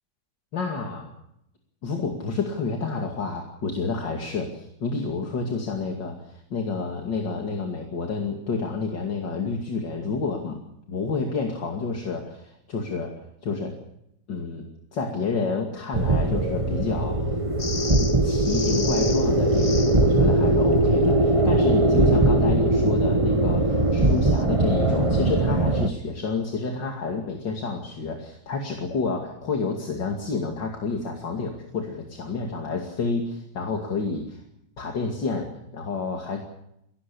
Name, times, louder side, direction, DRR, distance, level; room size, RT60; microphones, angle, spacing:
voice 1, 0.5-1.1 1.8-10.6 10.9-13.1 13.4-13.7 14.3-17.3 17.6-17.9 18.2-34.4 34.8-36.4, left 4 dB, 65° left, 2 dB, 3.1 m, -29 dB
sound 1, 15.9-25.9, right 2 dB, 20° right, 1.5 m, -21 dB
sound 2, 17.6-20.1 24.2-24.4, left 4 dB, 45° left, 0.4 m, -34 dB
22.5 x 17.5 x 8.6 m, 0.79 s
omnidirectional pair, 2.1 m